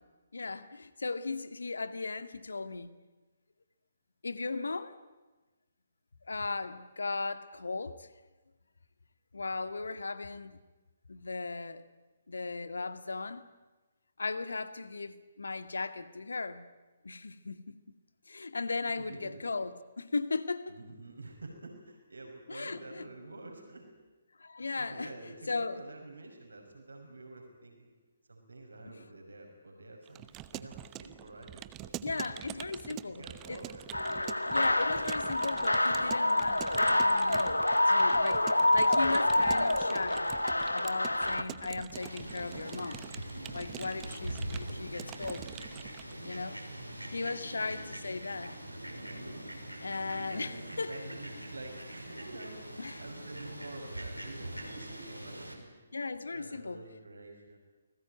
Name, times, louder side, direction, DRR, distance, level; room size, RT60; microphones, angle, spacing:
voice 1, 0.3-2.9 4.2-5.0 6.3-8.1 9.3-10.6 11.1-11.8 12.3-13.4 14.2-16.7 17.0-17.7 18.3-20.8 22.5-23.1 24.4-25.1 25.5-25.8 28.9-29.0 32.0-33.6 34.5-37.6 37.9-40.3 40.7-43.1 43.5-45.4 46.2-46.6 47.1-48.5 49.8-50.9 52.8-53.0 55.9-56.8, left 3 dB, 65° left, 1.9 m, -37 dB
voice 2, 18.9-19.4 20.7-23.9 24.8-27.9 28.3-33.9 44.4-45.3 46.4-47.5 50.3-52.6 53.0-55.8 56.2-57.6, right 2 dB, 70° right, 5.8 m, -49 dB
Keyboard (musical) / Computer keyboard, 30.1-46.1, right 14 dB, 20° right, 0.9 m, -46 dB
sound 1, 33.9-41.4, left 1 dB, 80° left, 1.7 m, -27 dB
Fowl, 41.9-55.5, right 1 dB, 90° right, 5.2 m, -43 dB
29.0 x 20.0 x 9.4 m
figure-of-eight pair, 135°, 0 cm